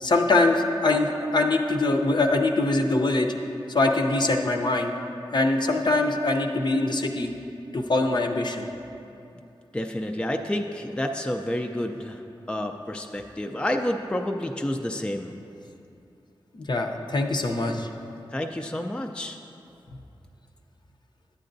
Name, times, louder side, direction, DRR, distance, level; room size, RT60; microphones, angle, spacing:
voice 1, 0.0-3.3 3.7-4.9 5.3-7.3 7.7-8.7 16.5-17.9, left 2 dB, 50° left, 3 dB, 0.6 m, -23 dB
voice 2, 9.7-12.2 12.5-15.3 18.3-19.4, left 1 dB, 10° left, 4 dB, 0.4 m, -29 dB
10.5 x 8.5 x 2.6 m, 2.7 s
wide cardioid pair, 60°, 9 cm